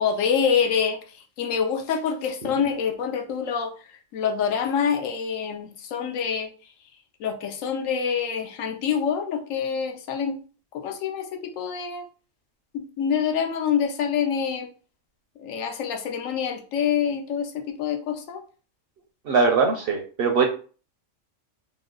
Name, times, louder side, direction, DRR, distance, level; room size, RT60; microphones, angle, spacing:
voice 1, 0.0-3.7 4.1-6.5 7.2-10.4 10.7-12.0 12.7-14.7 15.4-18.4, left 7 dB, 85° left, 4 dB, 1.0 m, -26 dB
voice 2, 19.3-20.5, right 4 dB, 60° right, 2 dB, 0.6 m, -21 dB
3.0 x 2.0 x 3.6 m, 0.38 s
omnidirectional pair, 1.3 m